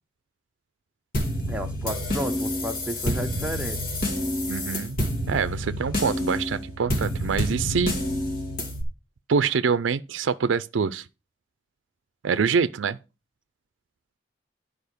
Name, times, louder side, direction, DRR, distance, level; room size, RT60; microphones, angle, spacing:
sound 1, 1.1-8.8, equal, 50° left, 2.2 m, -28 dB
voice 1, 1.5-3.8, equal, 5° right, 0.8 m, -32 dB
voice 2, 4.5-5.0 5.3-7.9 9.3-11.1 12.2-13.0, right 5 dB, 90° right, 0.4 m, -25 dB
10.5 x 5.0 x 6.6 m
head